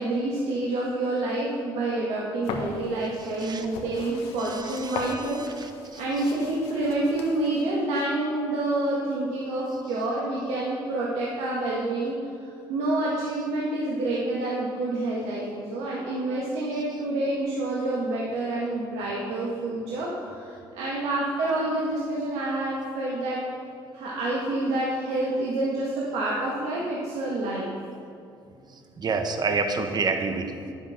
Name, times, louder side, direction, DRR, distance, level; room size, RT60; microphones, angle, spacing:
voice 1, 0.0-5.4 6.0-23.4 23.9-27.7, right 2 dB, 85° right, -5 dB, 1.6 m, -28 dB
sound 1, 2.4-7.6, left 4 dB, 80° left, 1.2 m, -39 dB
voice 2, 3.2-3.7 4.4-6.4 14.1-14.2 16.7-16.8 28.7-30.7, right 4 dB, 40° right, 6 dB, 1.2 m, -30 dB
9.6 x 7.9 x 5.8 m, 2.5 s
supercardioid pair, 75°, 10 cm